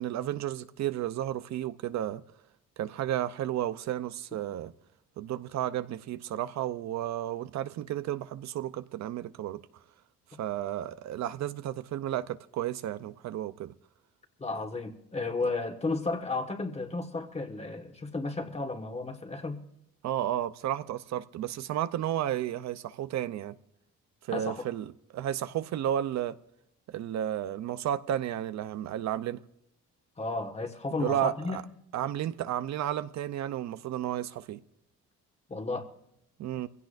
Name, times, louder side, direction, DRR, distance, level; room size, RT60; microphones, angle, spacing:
voice 1, 0.0-2.2 2.8-4.7 5.2-9.6 10.4-13.7 20.0-23.6 24.2-26.4 26.9-29.4 31.0-31.6 31.9-34.6 36.4-36.7, right 11 dB, 70° right, 0.7 m, -32 dB
voice 2, 14.4-19.6 24.3-24.6 30.2-31.6 35.5-35.9, left 3 dB, 20° left, 1.5 m, -33 dB
22.0 x 16.5 x 2.6 m
cardioid pair, 120°, 29 cm